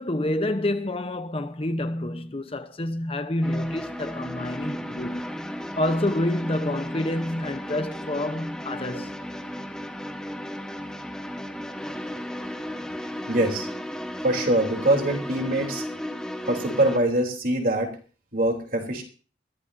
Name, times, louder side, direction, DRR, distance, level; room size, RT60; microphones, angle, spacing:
voice 1, 0.0-5.3 5.7-9.2, left 1 dB, 30° left, 0.8 m, -28 dB
sound 1, 3.4-17.0, equal, 5° left, 1.4 m, -35 dB
voice 2, 13.3-13.7 14.2-15.8 16.5-18.0 18.3-19.0, right 1 dB, 50° right, 3.2 m, -23 dB
21.5 x 14.5 x 2.7 m
head